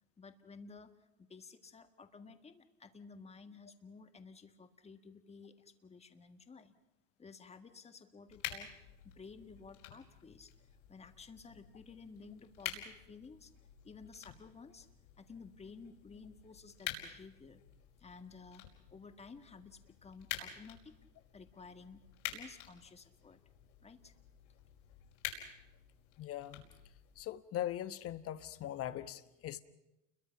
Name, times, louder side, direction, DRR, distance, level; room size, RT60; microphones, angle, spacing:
voice 1, 0.2-6.7 7.2-10.5 10.9-13.5 13.8-14.9 15.2-17.6 18.0-20.9 21.3-22.0 22.3-23.4 23.8-24.1, left 4 dB, 15° left, 1.8 m, -54 dB
sound 1, 8.3-27.3, left 11 dB, 70° left, 5.3 m, -49 dB
voice 2, 26.2-26.6 27.2-29.6, left 12 dB, 35° left, 1.3 m, -40 dB
29.5 x 22.5 x 5.9 m
supercardioid pair, 115°, 38 cm